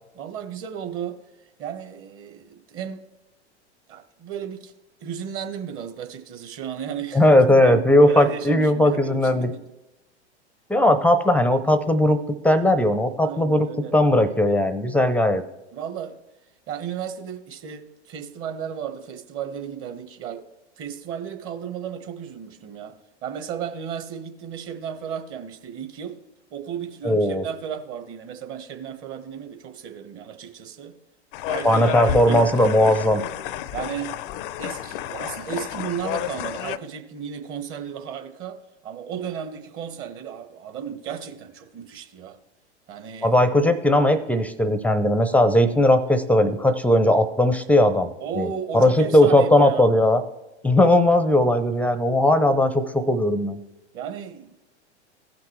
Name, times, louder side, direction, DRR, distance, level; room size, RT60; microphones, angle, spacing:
voice 1, 0.1-1.2 1.6-3.0 3.9-4.7 5.0-9.6 13.2-13.9 15.7-16.2 16.7-20.4 20.8-23.0 23.2-26.1 26.5-30.9 31.5-32.5 33.7-34.1 34.6-42.4 42.9-43.4 48.2-49.9 53.9-54.5, right 8 dB, 40° right, 7 dB, 1.3 m, -34 dB
voice 2, 7.1-9.5 10.7-12.2 12.4-15.4 27.0-27.4 31.6-33.2 43.2-50.2 50.6-53.6, left 1 dB, 5° left, 11 dB, 0.6 m, -18 dB
sound 1, 31.3-36.8, left 12 dB, 50° left, 0.5 m, -31 dB
16.5 x 5.9 x 3.2 m, 1.0 s
hypercardioid pair, 100°, 35 cm